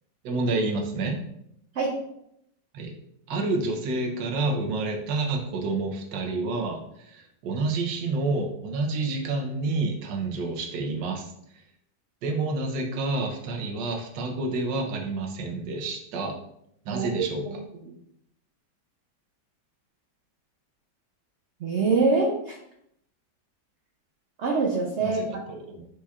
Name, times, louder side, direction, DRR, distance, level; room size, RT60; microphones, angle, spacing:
voice 1, 0.2-1.2 2.7-3.0 3.3-11.3 12.2-16.3 16.8-17.5 25.0-25.8, right 3 dB, 90° right, 2 dB, 1.4 m, -29 dB
voice 2, 16.9-17.5 21.6-22.6 24.4-25.2, right 4 dB, 70° right, 0 dB, 0.6 m, -24 dB
4.7 x 4.2 x 2.4 m, 0.75 s
omnidirectional pair, 1.9 m